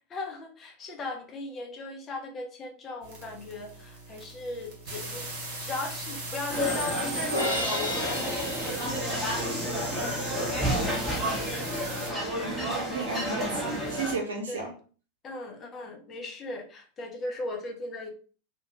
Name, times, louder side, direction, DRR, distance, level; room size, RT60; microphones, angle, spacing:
voice 1, 0.1-5.3 5.6-11.2 14.5-14.7 15.2-18.1, left 2 dB, 25° left, 2 dB, 0.6 m, -38 dB
sound 1, 3.0-12.1, right 1 dB, 45° right, 1.1 m, -38 dB
sound 2, 6.5-14.2, equal, ahead, 0.9 m, -31 dB
Crash cymbal, 7.3-9.6, left 1 dB, 75° left, 0.8 m, -32 dB
voice 2, 12.4-14.7, right 3 dB, 70° right, 1 dB, 0.7 m, -34 dB
2.4 x 2.1 x 2.9 m, 0.40 s
figure-of-eight pair, 90°, 0 cm